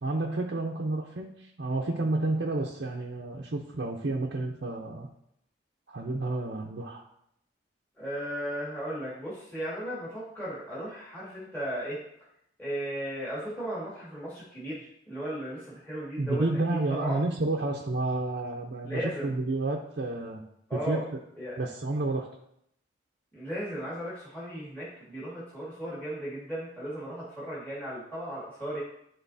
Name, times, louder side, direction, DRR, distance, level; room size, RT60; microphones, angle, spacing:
voice 1, 0.0-5.1 5.9-7.0 16.2-20.5 20.7-21.0 21.6-22.3, right 2 dB, 60° right, -1 dB, 0.6 m, -30 dB
voice 2, 8.0-12.0 12.6-16.5 16.9-17.2 18.8-19.3 20.7-21.0 21.4-21.6 23.3-28.8, equal, 10° left, -10 dB, 1.9 m, -36 dB
11.0 x 3.8 x 2.7 m, 0.74 s
head